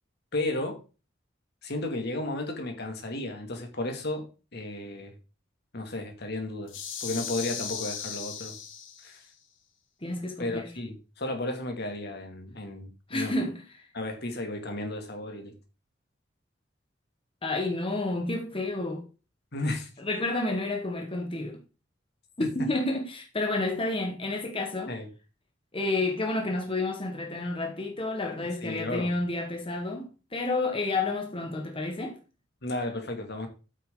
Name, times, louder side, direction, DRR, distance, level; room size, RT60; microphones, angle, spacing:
voice 1, 0.3-0.8 1.6-4.3 4.5-5.1 5.7-6.7 7.0-8.6 9.0-9.2 10.4-13.4 13.9-15.6 19.5-19.9 22.4-22.5 24.9-25.1 28.4-29.1 32.6-33.5, left 2 dB, 60° left, 2.4 m, -33 dB
sound 1, 6.7-9.2, left 7 dB, 85° left, 2.0 m, -37 dB
voice 2, 10.0-10.7 13.1-13.5 17.4-19.0 20.0-21.6 22.4-24.9 25.7-32.2, left 2 dB, 30° left, 1.5 m, -30 dB
8.8 x 8.2 x 3.8 m
head